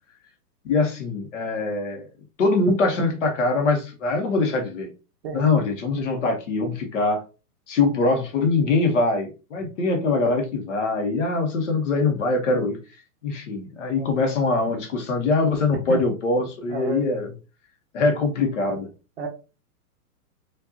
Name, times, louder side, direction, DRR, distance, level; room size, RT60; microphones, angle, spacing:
voice 1, 0.6-2.1 2.4-4.9 5.3-7.2 7.7-12.8 13.2-17.3 17.9-18.9, left 3 dB, 50° left, 1.1 m, -23 dB
voice 2, 16.7-17.0 19.2-19.3, right 4 dB, 40° right, 0.9 m, -30 dB
4.8 x 2.6 x 2.7 m
hypercardioid pair, 175°, 48 cm